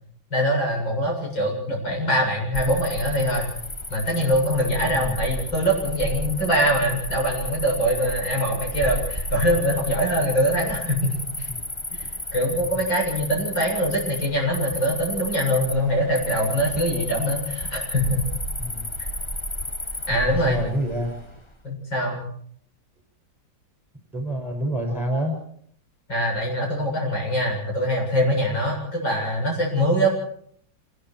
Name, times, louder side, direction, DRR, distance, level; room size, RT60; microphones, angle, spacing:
voice 1, 0.3-3.5 3.9-11.5 12.0-18.2 20.1-20.6 21.6-22.2 26.1-30.1, equal, 70° left, 0 dB, 8.5 m, -23 dB
Cricket, 2.5-21.5, left 1 dB, 15° left, 1.2 m, -32 dB
voice 2, 20.1-21.1 24.1-25.4, equal, ahead, 2 dB, 6.3 m, -27 dB
28.0 x 22.0 x 4.7 m, 0.63 s
omnidirectional pair, 2.1 m